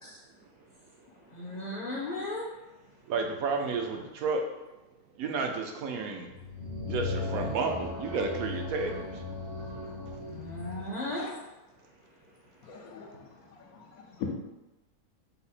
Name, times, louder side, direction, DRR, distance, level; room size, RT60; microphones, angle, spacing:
voice 1, 1.3-2.5 2.9-3.0 10.2-11.4 11.7-12.9, left 1 dB, 40° left, -4 dB, 0.6 m, -38 dB
voice 2, 3.1-4.4 5.2-6.3 6.8-9.2, right 4 dB, 75° right, 4 dB, 1.0 m, -31 dB
sound 1, 6.3-10.9, left 2 dB, 30° right, 0.6 m, -37 dB
voice 3, 12.6-14.3, left 6 dB, 75° left, 2 dB, 1.1 m, -42 dB
5.5 x 2.1 x 4.1 m, 1.0 s
omnidirectional pair, 1.6 m